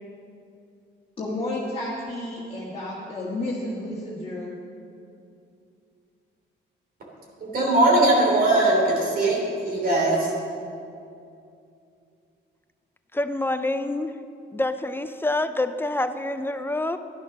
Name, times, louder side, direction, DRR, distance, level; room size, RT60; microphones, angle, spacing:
voice 1, 1.2-4.5, left 1 dB, 30° left, -6 dB, 1.9 m, -31 dB
voice 2, 7.4-9.4 9.6-10.3, right 2 dB, 50° right, -2 dB, 3.1 m, -20 dB
voice 3, 13.1-14.2 14.5-17.0, left 2 dB, 10° left, 10 dB, 0.4 m, -26 dB
11.5 x 11.5 x 6.0 m, 2.6 s
cardioid pair, 130°, 19 cm